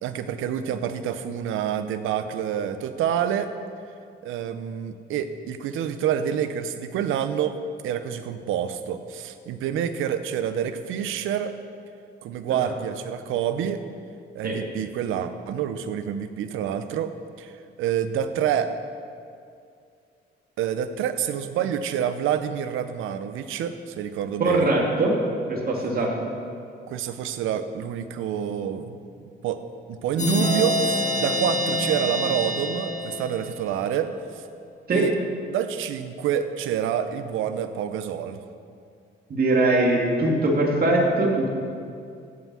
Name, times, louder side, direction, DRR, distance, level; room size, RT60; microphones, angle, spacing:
voice 1, 0.0-3.5 4.2-7.6 7.8-11.5 12.2-13.8 14.3-17.1 17.4-17.5 17.8-18.7 20.6-24.8 26.9-29.0 29.4-29.6 29.9-34.4 34.9-35.2 35.5-38.4, right 9 dB, 85° right, 10 dB, 0.7 m, -27 dB
voice 2, 24.4-25.2 25.5-26.1 34.9-35.1 39.3-41.5, right 2 dB, 50° right, -1 dB, 2.4 m, -21 dB
sound 1, 30.2-33.8, equal, 35° left, 2.0 m, -26 dB
15.5 x 5.6 x 6.2 m, 2.4 s
cardioid pair, 90°, 20 cm